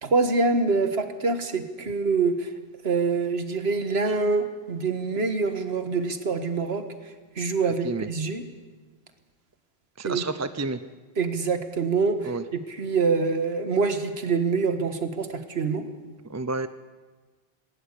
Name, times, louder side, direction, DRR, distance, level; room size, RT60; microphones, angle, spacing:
voice 1, 0.0-2.5 2.8-6.9 7.4-8.4 10.0-10.2 11.2-15.8, right 4 dB, 80° right, 8 dB, 1.8 m, -25 dB
voice 2, 10.0-10.8 12.2-12.4 16.3-16.7, right 3 dB, 20° right, 12 dB, 0.5 m, -30 dB
18.5 x 18.0 x 8.4 m, 1.3 s
omnidirectional pair, 1.1 m